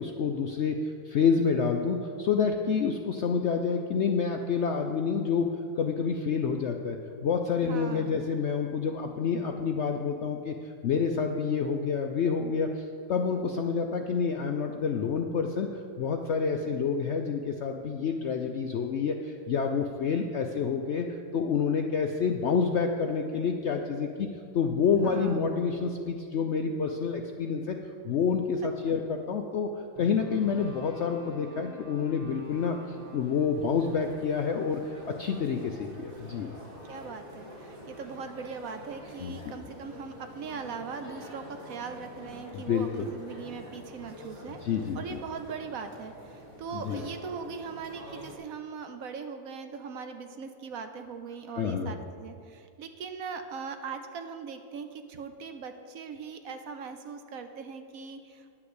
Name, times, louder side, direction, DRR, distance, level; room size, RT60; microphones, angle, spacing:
voice 1, 0.0-5.5 5.8-7.0 7.2-24.3 24.5-27.8 28.0-29.7 30.0-36.5 39.2-39.3 42.5-43.0 44.6-45.2 46.7-47.0 51.5-51.9, left 6 dB, 65° left, 4 dB, 0.7 m, -28 dB
voice 2, 7.6-8.2 25.0-25.5 28.9-29.0 36.8-44.6 44.9-58.5, right 5 dB, 65° right, 7 dB, 1.0 m, -40 dB
sound 1, 30.0-36.2, left 2 dB, 30° left, 0.9 m, -51 dB
sound 2, 32.3-48.4, equal, 35° right, 2.0 m, -47 dB
10.0 x 5.9 x 8.0 m, 2.4 s
omnidirectional pair, 1.7 m